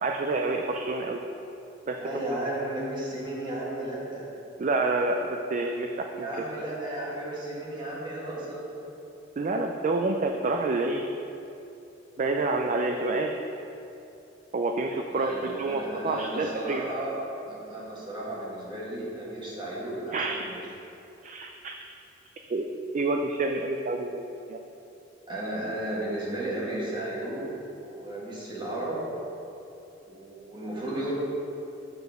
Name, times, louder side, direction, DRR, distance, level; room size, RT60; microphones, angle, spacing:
voice 1, 0.0-1.2 1.9-2.0 4.6-6.3 9.4-11.1 12.2-13.3 14.5-16.8 20.1-20.4 21.2-21.7 22.5-22.6 22.9-24.2 24.5-24.6, right 3 dB, 40° right, 3 dB, 0.4 m, -28 dB
voice 2, 2.0-4.3 6.1-8.9 15.1-17.2 17.5-20.6 25.3-29.0 30.0-31.1, right 1 dB, 25° right, -6 dB, 1.7 m, -34 dB
6.8 x 4.3 x 6.7 m, 2.8 s
head